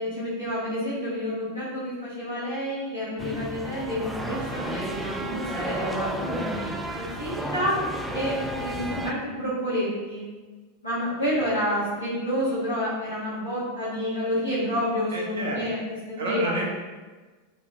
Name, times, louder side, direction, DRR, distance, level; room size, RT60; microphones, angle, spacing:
voice 1, 0.0-7.8 8.1-10.2 10.8-15.8 16.1-16.6, equal, 90° left, -13 dB, 1.1 m, -29 dB
sound 1, 3.2-9.1, right 1 dB, 5° right, 0.3 m, -32 dB
voice 2, 15.1-15.6 16.2-16.6, right 2 dB, 75° right, -3 dB, 0.7 m, -30 dB
3.0 x 2.7 x 2.3 m, 1.3 s
figure-of-eight pair, 90°, 0 cm